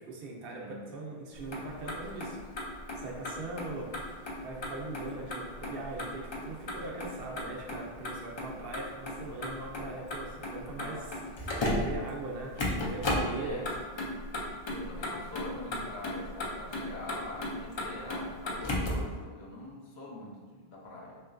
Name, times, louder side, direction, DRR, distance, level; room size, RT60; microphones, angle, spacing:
voice 1, 0.1-2.4 3.0-3.9 4.4-11.1 11.8-13.6, right 2 dB, 70° right, -1 dB, 0.7 m, -40 dB
Motor vehicle (road), 1.3-19.1, left 1 dB, 50° left, 0.3 m, -36 dB
voice 2, 10.7-11.0 13.4-13.7 14.7-21.2, left 2 dB, 80° left, -4 dB, 1.0 m, -44 dB
3.0 x 2.9 x 2.5 m, 1.4 s
omnidirectional pair, 1.1 m